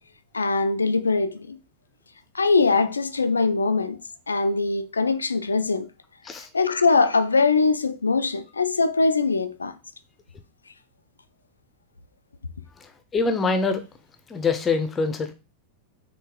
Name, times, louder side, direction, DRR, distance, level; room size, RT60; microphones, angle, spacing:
voice 1, 0.3-1.6 2.3-4.0 4.3-5.9 6.5-9.7, left 4 dB, 75° left, 0.4 m, -22 dB
voice 2, 13.1-13.8 14.3-15.3, left 4 dB, 20° left, 0.7 m, -24 dB
4.4 x 3.2 x 3.6 m
figure-of-eight pair, 90°, 0 cm